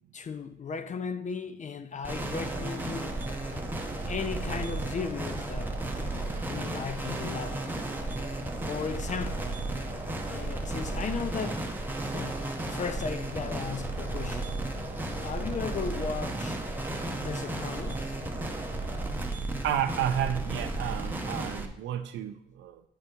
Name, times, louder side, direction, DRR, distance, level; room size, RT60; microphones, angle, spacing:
voice 1, 0.1-3.1 4.1-5.7 6.1-7.6 8.7-9.5 10.3-11.7 12.1-14.5 15.2-16.6 17.2-18.1, left 5 dB, 40° left, 0.5 m, -36 dB
sound 1, 2.0-21.7, right 2 dB, 10° right, 0.8 m, -34 dB
sound 2, 2.3-19.1, right 2 dB, 25° right, 1.1 m, -44 dB
voice 2, 19.6-22.8, right 10 dB, 85° right, 0.4 m, -31 dB
9.0 x 3.5 x 4.4 m
cardioid pair, 90°, 18 cm